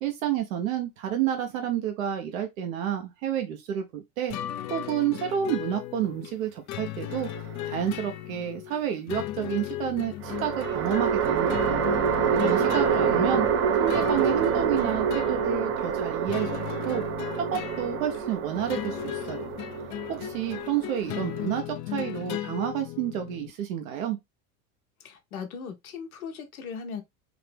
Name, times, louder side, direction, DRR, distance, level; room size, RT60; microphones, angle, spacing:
voice 1, 0.0-4.3 4.7-7.3 7.6-11.8 12.3-13.5 13.7-16.5 16.8-17.0 17.4-19.4 19.8-24.2, right 10 dB, 65° right, 0.9 m, -30 dB
sound 1, 4.3-23.5, left 13 dB, 40° left, 0.5 m, -36 dB
sound 2, 7.1-8.0 10.2-21.6, right 7 dB, 30° right, 0.6 m, -27 dB
voice 2, 12.7-13.4 25.0-27.0, left 6 dB, 75° left, 1.0 m, -39 dB
4.0 x 2.8 x 3.4 m
hypercardioid pair, 80°, 43 cm